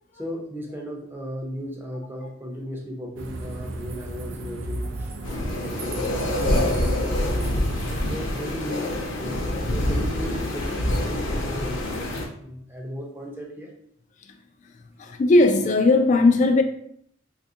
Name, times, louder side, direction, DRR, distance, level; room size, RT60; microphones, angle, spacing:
voice 1, 0.1-7.6 8.1-8.9 9.2-11.9 12.3-13.7, equal, 10° right, 0.6 m, -36 dB
sound 1, 3.2-8.2, right 2 dB, 75° right, 0.4 m, -34 dB
sound 2, 5.2-12.3, left 1 dB, 70° left, 0.7 m, -26 dB
voice 2, 15.0-16.6, left 2 dB, 40° left, 0.3 m, -17 dB
3.3 x 2.5 x 2.7 m
head